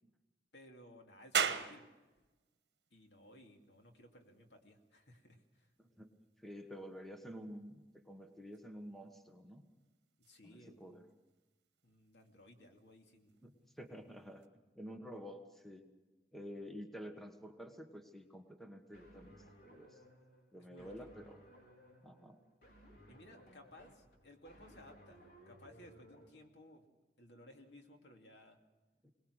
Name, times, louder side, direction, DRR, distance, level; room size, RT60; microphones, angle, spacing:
voice 1, 0.5-1.9 2.9-5.7 10.2-11.1 11.8-13.4 20.6-21.1 23.1-25.2 25.5-26.9 27.2-28.6, left 1 dB, 80° left, 3 dB, 2.5 m, -59 dB
sound 1, 1.3-14.5, right 7 dB, 70° right, 1.2 m, -45 dB
voice 2, 5.8-6.1 6.4-9.7 10.4-11.0 13.4-14.5 14.8-15.8 16.3-19.4 19.6-20.0 20.5-21.4 22.0-22.4 29.0-29.1, equal, ahead, 5 dB, 1.4 m, -50 dB
sound 2, 18.9-26.3, equal, 60° left, 4.3 m, -61 dB
22.5 x 19.0 x 6.4 m, 1.1 s
head